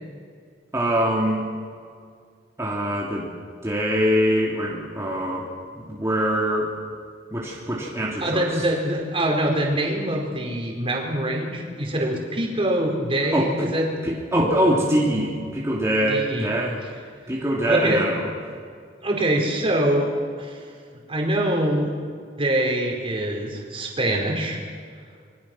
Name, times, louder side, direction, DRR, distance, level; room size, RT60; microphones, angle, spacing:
voice 1, 0.7-1.4 2.6-3.3 3.6-5.5 5.7-6.7 7.3-8.7 13.3-13.7 14.0-16.8 17.3-18.3, equal, 15° right, -5 dB, 3.0 m, -23 dB
voice 2, 8.2-13.8 16.1-16.5 17.7-18.0 19.0-20.1 20.4-20.6 21.1-21.9 22.4-24.6, right 1 dB, 30° right, 0 dB, 4.6 m, -24 dB
26.0 x 23.0 x 6.2 m, 2.2 s
head